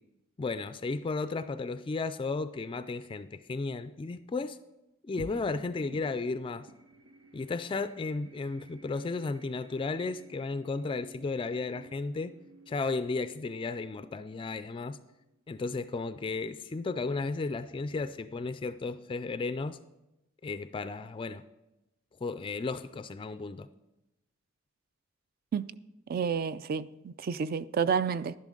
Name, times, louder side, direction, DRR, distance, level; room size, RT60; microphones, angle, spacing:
voice 1, 0.4-4.6 5.0-6.7 7.3-12.3 12.7-15.0 15.5-19.8 20.4-21.4 22.2-23.7, left 3 dB, 25° left, 0.3 m, -34 dB
sound 1, 5.2-15.8, right 2 dB, 85° right, 0.8 m, -54 dB
voice 2, 26.1-28.4, right 6 dB, 50° right, 0.4 m, -30 dB
11.5 x 10.5 x 3.8 m
head